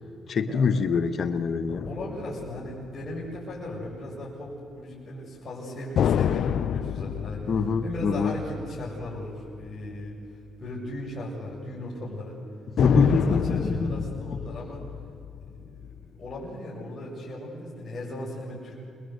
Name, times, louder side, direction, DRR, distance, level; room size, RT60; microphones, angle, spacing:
voice 1, 0.3-1.9 7.5-8.3 12.8-14.1, left 5 dB, 50° left, 9 dB, 1.4 m, -24 dB
sound 1, 1.7-3.6 6.0-9.7 10.0-10.1 12.8-16.5, left 9 dB, 65° left, 0.6 m, -29 dB
voice 2, 1.9-7.4 7.8-10.1 10.6-12.4 12.9-14.8 15.4-15.7 16.2-18.7, left 1 dB, 35° left, -6 dB, 7.4 m, -37 dB
27.5 x 22.0 x 8.1 m, 2.6 s
cardioid pair, 90°, 0 cm